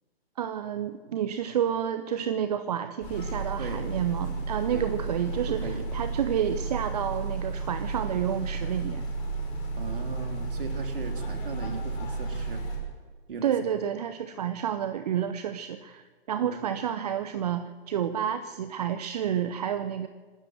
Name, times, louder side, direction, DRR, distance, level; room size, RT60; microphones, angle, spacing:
voice 1, 0.4-9.0 13.4-20.1, right 9 dB, 40° right, 11 dB, 0.8 m, -30 dB
sound 1, 3.0-12.8, right 3 dB, 30° left, 6.0 m, -33 dB
voice 2, 5.5-5.9 9.7-12.6 13.3-13.5 16.4-16.8, right 4 dB, 55° right, 4 dB, 3.4 m, -38 dB
26.0 x 13.0 x 7.7 m, 1.4 s
figure-of-eight pair, 125°, 32 cm